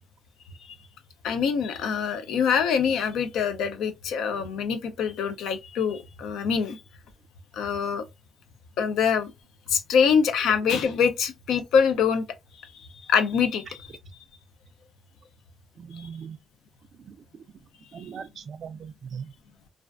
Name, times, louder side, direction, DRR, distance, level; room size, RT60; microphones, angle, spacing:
voice 1, 1.2-6.8 7.5-8.0 8.8-9.3 9.7-12.2 12.6-13.9 15.9-16.1 18.0-18.1, left 6 dB, 80° left, 0.4 m, -24 dB
voice 2, 15.8-16.4 16.9-17.2 17.9-19.3, right 7 dB, 55° right, 0.3 m, -39 dB
2.4 x 2.3 x 2.2 m
cardioid pair, 90°, 0 cm